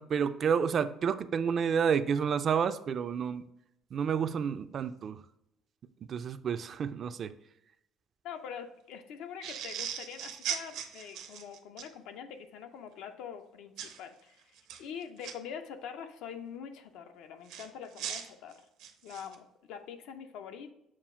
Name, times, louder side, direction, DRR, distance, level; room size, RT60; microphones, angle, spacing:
voice 1, 0.0-3.5 3.9-5.2 6.1-7.3, right 7 dB, 45° right, 12 dB, 0.3 m, -30 dB
voice 2, 8.2-18.7 19.0-20.7, left 7 dB, 80° left, 7 dB, 0.6 m, -44 dB
sound 1, 9.4-11.9 13.8-14.0 14.6-15.3 17.5-19.4, right 9 dB, 80° right, 0.7 m, -39 dB
7.2 x 2.4 x 5.4 m, 0.81 s
cardioid pair, 125°, 0 cm